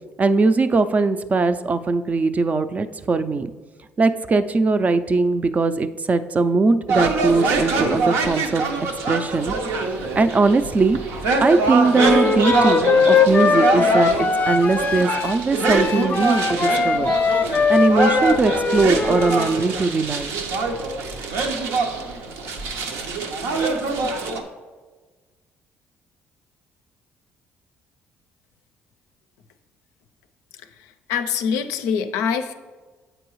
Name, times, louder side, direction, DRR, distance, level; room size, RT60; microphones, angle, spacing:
voice 1, 0.2-3.5 4.0-8.6 9.1-9.5 10.2-11.0 11.4-17.1 17.7-20.3, right 3 dB, 30° right, 11 dB, 0.4 m, -20 dB
sound 1, 6.9-24.4, right 3 dB, 80° right, 0.7 m, -24 dB
Wind instrument woodwind instrument, 12.0-19.5, left 5 dB, 30° left, 0.5 m, -20 dB
voice 2, 31.1-32.5, left 7 dB, 85° left, 9 dB, 0.4 m, -24 dB
7.8 x 4.6 x 3.1 m, 1.3 s
supercardioid pair, 75°, 5 cm